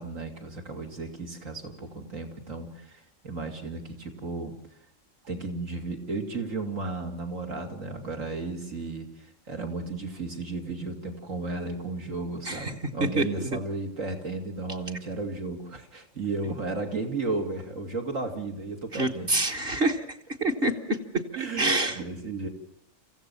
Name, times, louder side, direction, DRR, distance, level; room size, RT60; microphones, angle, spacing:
voice 1, 0.0-4.5 5.2-19.3 21.3-22.5, right 3 dB, 80° right, 3 dB, 3.3 m, -34 dB
voice 2, 13.2-13.5 18.9-21.0 21.3-22.0, right 2 dB, 50° right, 2 dB, 1.7 m, -27 dB
26.5 x 15.5 x 7.2 m, 0.74 s
omnidirectional pair, 1.3 m